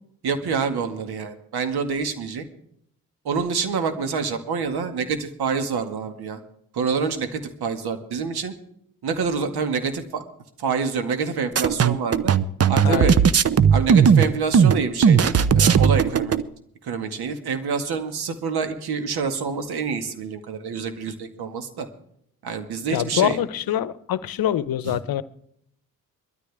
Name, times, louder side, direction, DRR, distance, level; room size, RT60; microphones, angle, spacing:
voice 1, 0.2-2.4 3.2-6.4 6.7-8.5 9.0-10.2 10.6-12.3 12.7-13.1 13.7-16.3 16.8-21.9 22.4-23.4 24.9-25.0, right 5 dB, 60° right, 7 dB, 2.1 m, -27 dB
sound 1, 11.6-16.4, right 7 dB, 35° right, 0.8 m, -17 dB
voice 2, 12.8-13.2 22.9-25.2, left 11 dB, 55° left, 16 dB, 0.9 m, -24 dB
21.0 x 13.0 x 3.6 m, 0.69 s
hypercardioid pair, 45°, 42 cm